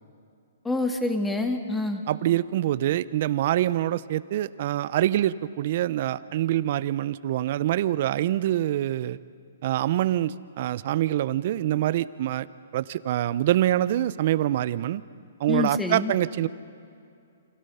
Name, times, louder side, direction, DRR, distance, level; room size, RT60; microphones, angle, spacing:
voice 1, 0.6-2.0 15.5-16.1, left 3 dB, 5° left, 5 dB, 2.1 m, -26 dB
voice 2, 2.1-9.2 9.6-12.5 12.7-15.0 15.4-16.5, right 13 dB, 50° right, 16 dB, 0.8 m, -25 dB
29.5 x 25.5 x 5.7 m, 2.4 s
hypercardioid pair, 145°, 0 cm